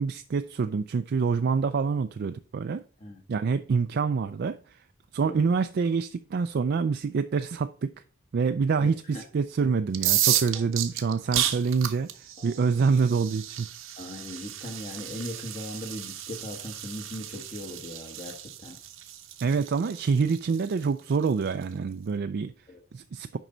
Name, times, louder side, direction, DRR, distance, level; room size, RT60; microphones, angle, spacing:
voice 1, 0.0-2.8 3.3-4.6 5.1-7.9 8.3-12.1 12.4-13.7 19.4-22.5 22.9-23.4, right 5 dB, 55° right, 0.4 m, -26 dB
voice 2, 8.8-9.2 9.6-9.7 10.5-10.9 12.4-12.9 13.9-18.8 22.7-22.8, left 1 dB, 35° left, 1.2 m, -39 dB
sound 1, 9.9-21.6, right 12 dB, 80° right, 0.9 m, -32 dB
9.2 x 5.4 x 3.9 m
head